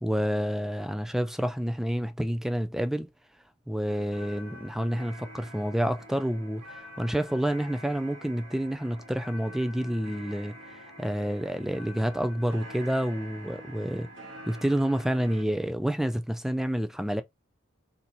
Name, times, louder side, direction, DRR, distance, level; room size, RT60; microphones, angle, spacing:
voice 1, 0.0-3.1 3.7-14.1 14.5-17.2, equal, ahead, 0.4 m, -29 dB
sound 1, 3.9-15.4, equal, 70° right, 1.8 m, -46 dB
4.3 x 3.9 x 2.8 m
head